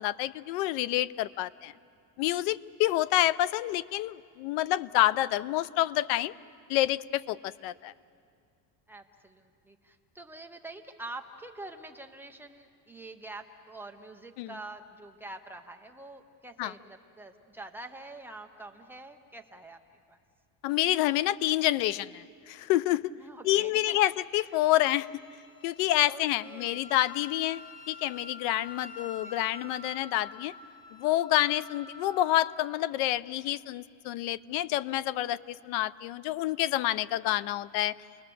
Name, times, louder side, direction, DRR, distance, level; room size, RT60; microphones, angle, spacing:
voice 1, 0.0-1.7 2.2-6.3 6.7-7.9 14.4-14.5 16.6-16.7 20.6-23.1 23.4-25.1 25.6-30.5 30.9-37.9, left 15 dB, 75° left, 18 dB, 0.6 m, -28 dB
voice 2, 8.9-19.8 20.1-20.2 23.2-24.4 26.0-26.9 29.0-29.4, right 2 dB, 5° right, 3 dB, 0.5 m, -46 dB
Wind instrument woodwind instrument, 24.5-32.6, left 3 dB, 35° left, 1.9 m, -48 dB
29.5 x 21.0 x 6.8 m, 2.3 s
cardioid pair, 180°, 40 cm